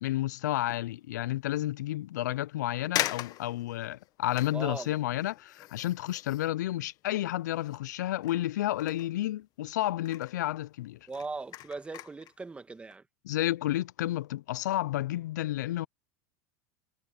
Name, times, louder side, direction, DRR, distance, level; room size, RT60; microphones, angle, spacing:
voice 1, 0.0-11.0 13.2-15.9, left 14 dB, 85° left, 0.4 m, -31 dB
sound 1, 0.6-1.0 1.5-1.6 2.4-2.5 2.9-7.9 8.2-9.7 9.9-10.4 10.8-12.4 12.8-12.9, left 14 dB, 45° left, 1.3 m, -40 dB
voice 2, 4.5-5.0 11.1-13.0, right 3 dB, 15° right, 2.0 m, -39 dB
supercardioid pair, 115°, 9 cm